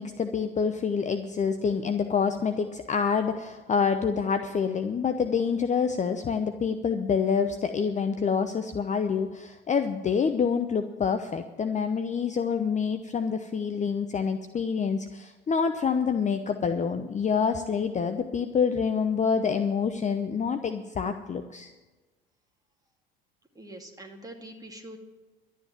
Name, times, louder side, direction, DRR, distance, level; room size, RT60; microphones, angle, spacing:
voice 1, 0.0-21.7, left 6 dB, 25° left, 8 dB, 0.8 m, -27 dB
voice 2, 23.5-25.0, right 1 dB, 10° right, 3 dB, 2.4 m, -44 dB
12.0 x 9.3 x 7.5 m, 1.2 s
figure-of-eight pair, 65°, 30 cm